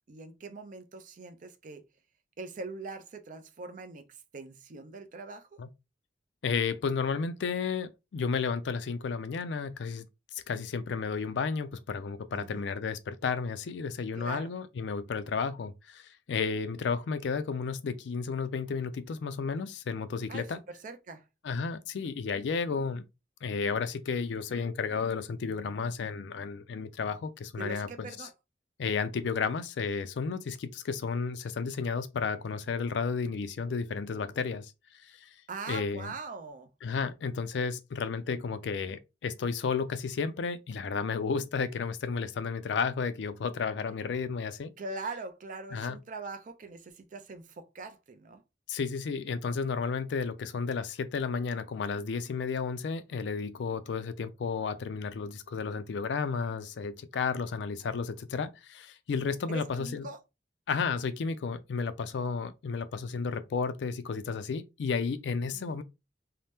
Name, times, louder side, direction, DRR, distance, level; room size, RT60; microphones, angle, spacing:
voice 1, 0.1-1.8 2.4-4.0 4.3-5.5 12.3-12.7 14.1-14.5 20.3-21.2 27.5-28.3 35.5-36.7 44.8-48.4 59.5-60.2 65.5-65.8, right 3 dB, 45° right, 0.4 m, -42 dB
voice 2, 6.4-10.1 10.3-20.6 21.4-23.1 23.4-28.3 28.8-34.7 35.0-35.3 35.7-36.1 36.8-44.7 45.7-46.0 48.7-60.1 60.7-65.8, left 5 dB, 80° left, 0.4 m, -32 dB
2.8 x 2.1 x 3.3 m
head